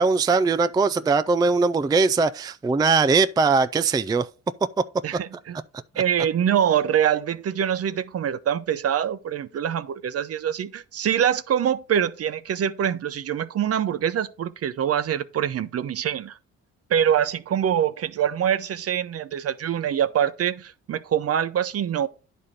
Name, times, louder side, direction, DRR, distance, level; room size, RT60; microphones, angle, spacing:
voice 1, 0.0-4.3, right 4 dB, 15° right, 0.3 m, -20 dB
voice 2, 5.0-5.6 6.0-16.4 16.9-22.1, right 9 dB, 50° right, 0.7 m, -24 dB
10.5 x 4.3 x 5.0 m
cardioid pair, 90°, 30 cm